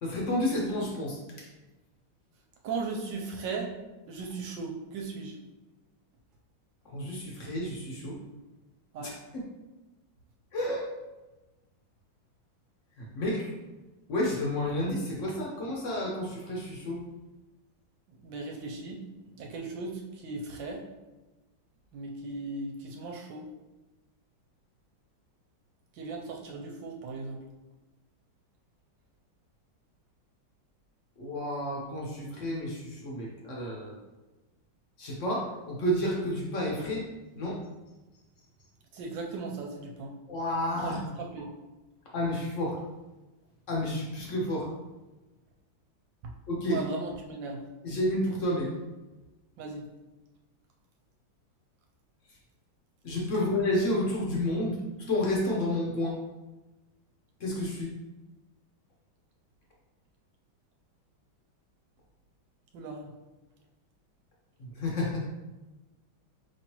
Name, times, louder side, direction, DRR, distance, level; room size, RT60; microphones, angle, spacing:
voice 1, 0.0-1.5 6.8-8.2 9.0-9.4 10.5-10.9 13.0-13.5 14.1-17.0 31.2-34.0 35.0-37.1 37.4-37.6 40.3-41.0 41.3-41.4 42.1-42.8 43.7-44.7 46.5-46.8 47.8-48.7 53.0-56.2 57.4-57.9 64.6-65.3, left 1 dB, 60° left, -3 dB, 0.8 m, -30 dB
voice 2, 2.6-3.7 4.1-5.3 8.9-9.1 18.1-19.0 19.3-20.8 21.9-23.5 26.0-27.4 38.9-40.2 40.8-41.5 46.2-46.3 46.7-47.6 49.6-49.9 62.7-63.1, right 3 dB, 75° right, 1 dB, 1.2 m, -37 dB
4.9 x 3.1 x 2.9 m, 1.1 s
omnidirectional pair, 2.3 m